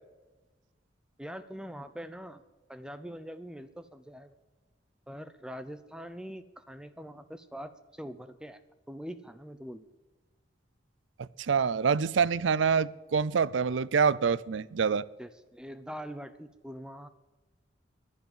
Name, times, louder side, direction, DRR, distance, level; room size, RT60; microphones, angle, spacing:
voice 1, 1.2-2.4 2.7-4.3 5.1-8.6 8.9-9.9 15.2-17.1, equal, 5° right, 0.5 m, -43 dB
voice 2, 11.2-15.0, right 6 dB, 80° right, 0.5 m, -26 dB
11.0 x 10.5 x 9.0 m
head